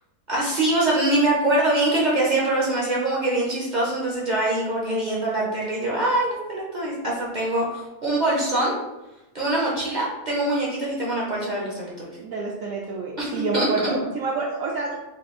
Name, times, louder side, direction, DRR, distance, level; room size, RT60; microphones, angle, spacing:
voice 1, 0.3-8.7 9.3-12.1 13.2-14.0, right 1 dB, 45° right, -5 dB, 0.6 m, -24 dB
voice 2, 12.2-14.9, right 3 dB, 70° right, -2 dB, 0.8 m, -28 dB
4.2 x 2.3 x 3.6 m, 1.0 s
omnidirectional pair, 1.7 m